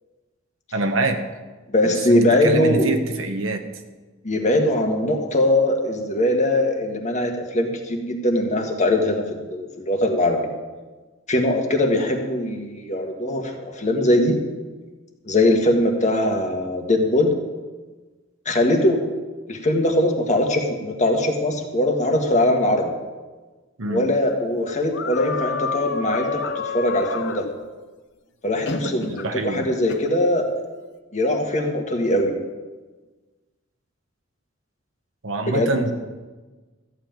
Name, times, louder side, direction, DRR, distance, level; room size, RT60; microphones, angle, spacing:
voice 1, 0.7-1.2 1.9-3.6 23.8-24.0 28.8-29.7 35.2-35.9, right 2 dB, 75° right, 6 dB, 1.2 m, -25 dB
voice 2, 1.7-2.9 4.2-10.4 11.3-14.4 15.3-17.3 18.5-19.0 19.5-22.9 23.8-27.4 28.4-30.4 31.1-32.3 35.5-35.9, left 1 dB, 40° left, 2 dB, 1.7 m, -21 dB
sound 1, 24.9-27.5 28.7-29.3 29.9-30.1, left 4 dB, 65° left, 0.9 m, -28 dB
14.0 x 5.8 x 8.9 m, 1.3 s
head